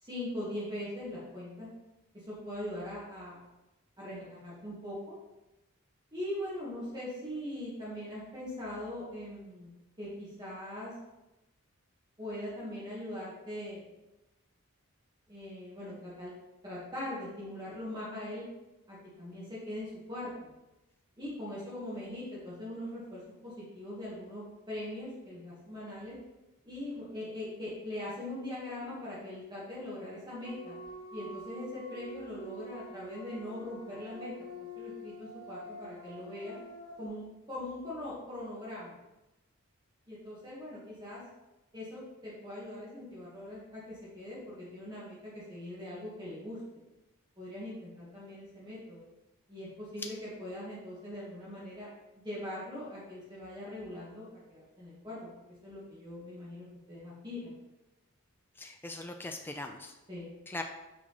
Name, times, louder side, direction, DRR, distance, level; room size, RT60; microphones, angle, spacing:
voice 1, 0.0-1.7 2.1-3.4 4.0-5.2 6.1-10.9 12.2-13.8 15.3-16.3 16.6-18.5 18.9-20.5 21.2-26.2 26.6-30.8 31.1-36.6 37.0-39.0 40.1-41.2 41.7-46.6 47.4-49.0 49.5-51.9 52.2-55.3 55.6-57.5 60.1-60.3, left 1 dB, 20° right, -9 dB, 2.0 m, -41 dB
sound 1, 30.4-37.1, equal, 65° left, 2.0 m, -46 dB
voice 2, 58.6-59.9 60.5-60.6, left 2 dB, 10° left, 4 dB, 0.4 m, -40 dB
6.1 x 4.8 x 5.8 m, 1.0 s
head